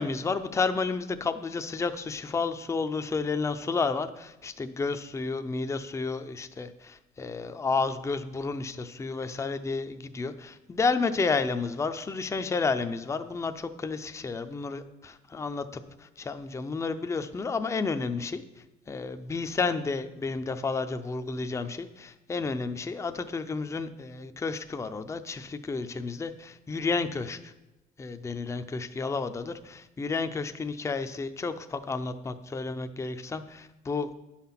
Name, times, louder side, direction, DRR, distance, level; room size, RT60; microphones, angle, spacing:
voice 1, 0.0-15.7 16.2-18.4 18.9-27.4 28.0-34.1, left 4 dB, 15° left, 9 dB, 0.5 m, -31 dB
9.8 x 5.8 x 5.8 m, 1.0 s
cardioid pair, 110°, 17 cm